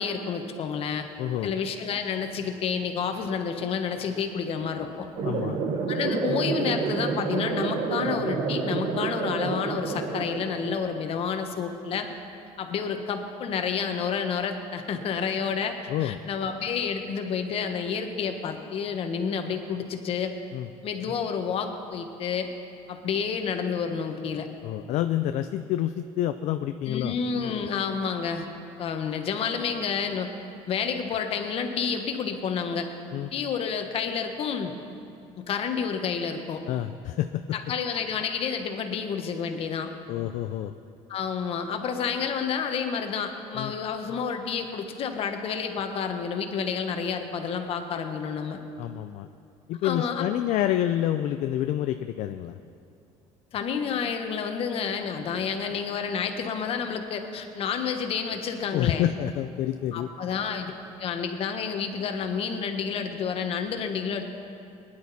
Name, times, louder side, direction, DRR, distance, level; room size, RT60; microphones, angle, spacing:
voice 1, 0.0-1.1 1.4-5.1 5.9-12.1 12.6-15.8 16.0-20.3 20.8-22.5 22.9-24.5 26.9-28.5 28.8-30.3 30.7-32.9 33.3-34.7 35.4-36.6 37.5-39.9 41.1-48.6 49.8-50.3 53.5-59.1 59.9-60.7 61.0-64.2, left 6 dB, 50° left, 5 dB, 1.3 m, -29 dB
voice 2, 1.2-1.5 5.2-5.6 15.9-16.2 20.5-20.7 24.6-27.2 33.1-33.3 36.7-37.6 40.1-40.7 43.5-43.7 48.8-49.3 49.7-52.6 58.7-60.1, left 12 dB, 65° left, 9 dB, 0.4 m, -28 dB
sound 1, 5.2-11.2, right 4 dB, 60° right, 1.1 m, -29 dB
20.0 x 10.5 x 4.2 m, 2.6 s
cardioid pair, 130°, 13 cm